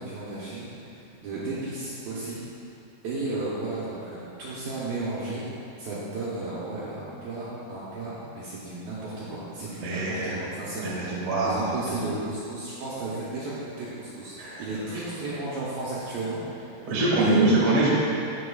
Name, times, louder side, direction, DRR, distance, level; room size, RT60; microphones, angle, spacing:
voice 1, 0.0-2.4 3.0-5.4 5.8-11.0 11.4-16.8 17.1-17.6, right 3 dB, 70° right, -9 dB, 2.5 m, -33 dB
voice 2, 9.8-10.4 10.8-11.6 14.4-14.6 16.9-17.9, right 2 dB, 45° right, -7 dB, 1.9 m, -24 dB
13.5 x 5.3 x 2.4 m, 2.7 s
omnidirectional pair, 4.9 m